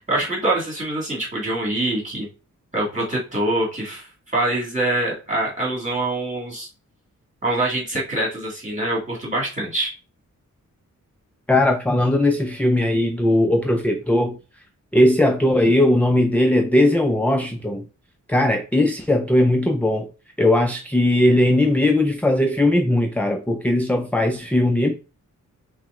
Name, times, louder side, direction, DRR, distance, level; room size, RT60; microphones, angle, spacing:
voice 1, 0.0-2.3 2.7-4.1 4.3-6.7 7.4-9.9, right 1 dB, 25° right, 2.1 m, -24 dB
voice 2, 11.5-14.4 14.9-17.8 18.3-20.1 20.4-24.9, left 1 dB, 5° left, 0.4 m, -19 dB
5.8 x 2.1 x 3.6 m
wide cardioid pair, 120°, 31 cm